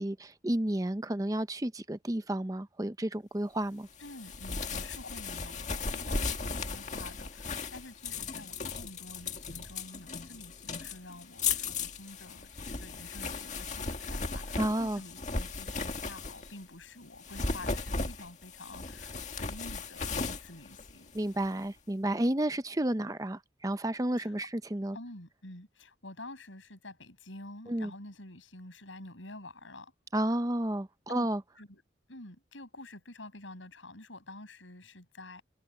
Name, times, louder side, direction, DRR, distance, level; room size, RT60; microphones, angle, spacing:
voice 1, 0.0-3.9 14.6-15.0 21.1-25.0 27.7-27.9 30.1-31.4, right 1 dB, 20° right, 0.7 m, -31 dB
voice 2, 4.0-21.1 24.2-24.3 24.9-29.9 31.1-31.3 31.6-31.8 32.1-35.4, left 2 dB, 85° left, 7.2 m, -48 dB
sound 1, 4.0-16.6 17.1-21.5, left 4 dB, 40° left, 2.0 m, -36 dB
head